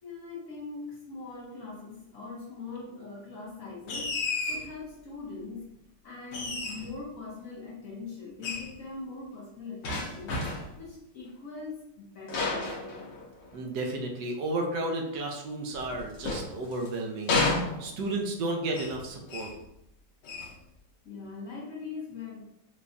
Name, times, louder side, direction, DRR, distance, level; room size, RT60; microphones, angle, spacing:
voice 1, 0.0-5.8 6.0-10.4 10.8-13.2 21.0-22.4, left 4 dB, 55° left, -4 dB, 1.1 m, -41 dB
sound 1, 3.9-4.7 6.3-7.0 8.4-8.7 9.8-10.8 12.3-13.6 15.7-16.9 17.3-18.2 18.7-19.0 19.3-19.6 20.2-20.6, left 3 dB, 85° left, 1.5 m, -32 dB
voice 2, 13.5-19.5, right 2 dB, 75° right, 1 dB, 1.3 m, -33 dB
4.9 x 2.2 x 2.5 m, 0.81 s
omnidirectional pair, 1.9 m